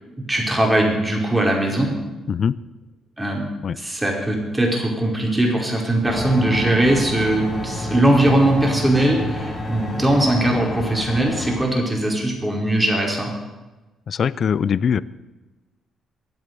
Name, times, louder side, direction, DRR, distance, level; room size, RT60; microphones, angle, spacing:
voice 1, 0.3-1.9 3.2-3.5 3.7-13.3, right 1 dB, 10° right, 0 dB, 5.0 m, -20 dB
sound 1, 6.1-11.6, equal, 20° left, 3.4 m, -29 dB
voice 2, 14.1-15.0, left 7 dB, 55° left, 18 dB, 0.6 m, -21 dB
22.5 x 8.1 x 6.9 m, 1.1 s
cardioid pair, 90°, 0 cm